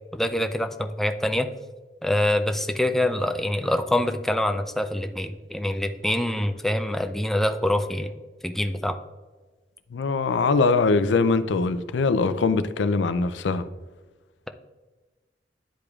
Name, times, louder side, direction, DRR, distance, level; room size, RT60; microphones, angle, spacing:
voice 1, 0.1-1.5 2.0-8.1 8.4-9.0, left 1 dB, ahead, 0.3 m, -25 dB
voice 2, 9.9-13.7, left 4 dB, 90° left, 0.4 m, -22 dB
10.0 x 4.9 x 2.4 m
head